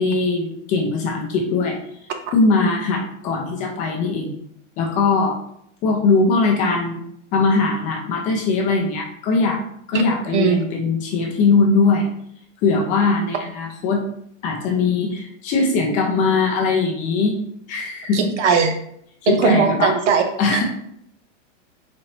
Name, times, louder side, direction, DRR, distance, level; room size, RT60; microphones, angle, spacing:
voice 1, 0.0-1.8 2.3-4.4 4.8-5.3 5.8-7.0 7.3-9.6 9.9-12.1 12.6-14.0 14.4-17.4 17.7-18.2 19.2-19.9 20.4-20.6, left 4 dB, 20° left, 0 dB, 0.4 m, -20 dB
voice 2, 18.1-18.7 19.3-20.2 20.5-20.6, right 5 dB, 70° right, 5 dB, 0.9 m, -18 dB
4.1 x 3.1 x 2.8 m, 0.71 s
hypercardioid pair, 140°, 37 cm